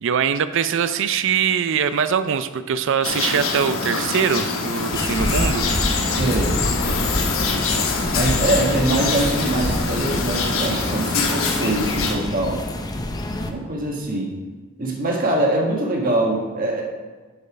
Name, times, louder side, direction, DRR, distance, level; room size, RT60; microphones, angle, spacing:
voice 1, 0.0-5.7, right 7 dB, 60° right, 12 dB, 0.4 m, -22 dB
sound 1, 3.0-12.1, left 4 dB, 75° left, 1.1 m, -25 dB
sound 2, 4.9-13.5, left 1 dB, 20° left, 0.5 m, -26 dB
voice 2, 6.2-6.6 6.8-7.1 8.1-12.6 13.4-14.3 14.8-16.8, right 1 dB, 45° right, -1 dB, 1.5 m, -23 dB
7.9 x 5.4 x 5.0 m, 1.3 s
head